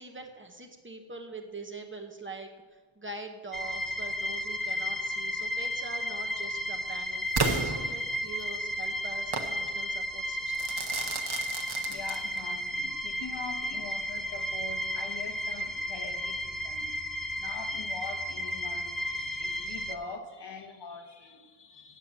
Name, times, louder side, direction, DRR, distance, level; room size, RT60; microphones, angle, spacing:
voice 1, 0.0-2.5 3.0-10.7, right 3 dB, 25° right, 3 dB, 0.9 m, -43 dB
sound 1, 3.5-19.9, left 1 dB, ahead, 0.5 m, -33 dB
Crackle / Fireworks, 7.3-8.5 9.3-9.6 10.5-12.5, right 4 dB, 50° right, 1.0 m, -32 dB
voice 2, 11.8-16.9 17.4-22.0, left 4 dB, 60° left, 4 dB, 1.4 m, -43 dB
9.1 x 7.5 x 7.5 m, 1.4 s
wide cardioid pair, 175°, 48 cm